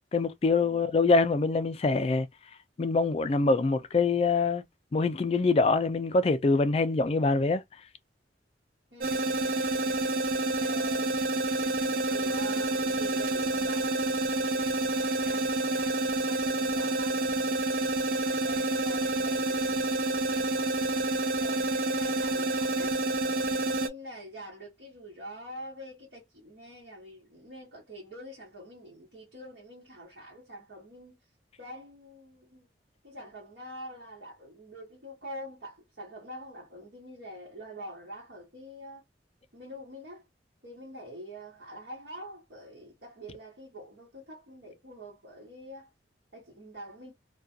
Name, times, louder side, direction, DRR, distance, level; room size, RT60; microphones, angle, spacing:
voice 1, 0.1-2.3 2.8-4.6 4.9-7.6, left 3 dB, 35° left, 0.3 m, -24 dB
voice 2, 8.9-9.3 10.5-11.2 11.8-16.0 16.3-17.4 18.4-19.8 20.1-23.0 23.6-31.2 31.6-32.7 33.0-39.0 39.5-40.2 40.6-45.9 46.3-47.1, equal, 75° right, 1.2 m, -45 dB
sound 1, 9.0-23.9, right 2 dB, 50° right, 0.3 m, -28 dB
2.3 x 2.2 x 2.6 m
head